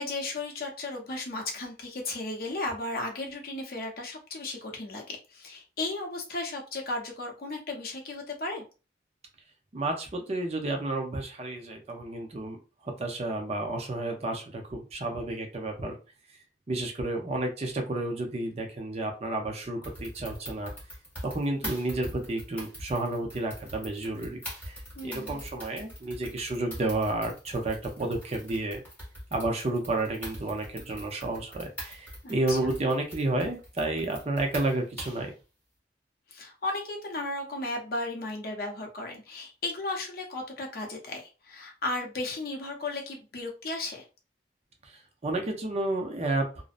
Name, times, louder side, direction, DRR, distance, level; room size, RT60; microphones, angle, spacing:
voice 1, 0.0-8.6 24.9-25.4 32.2-32.6 36.3-44.0, left 2 dB, 55° left, 1 dB, 0.6 m, -35 dB
voice 2, 9.7-12.6 12.8-16.0 16.7-20.7 21.2-24.8 25.0-28.8 29.3-35.3 44.8-46.5, right 2 dB, 35° right, 3 dB, 0.5 m, -31 dB
sound 1, 19.8-35.3, equal, 10° left, 1.1 m, -43 dB
2.5 x 2.0 x 2.4 m, 0.32 s
head